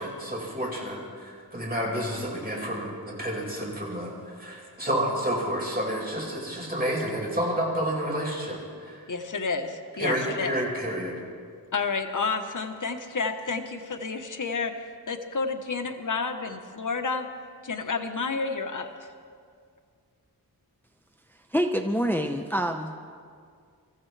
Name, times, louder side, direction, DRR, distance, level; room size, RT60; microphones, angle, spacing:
voice 1, 0.0-9.0 10.0-11.1, equal, 25° right, -3 dB, 5.2 m, -30 dB
voice 2, 9.1-10.5 11.7-14.7 15.1-17.3 17.6-19.1, left 4 dB, 50° left, 5 dB, 1.1 m, -30 dB
voice 3, 21.5-23.0, equal, 5° left, 5 dB, 0.8 m, -26 dB
25.5 x 14.5 x 3.3 m, 2.2 s
wide cardioid pair, 45°, 39 cm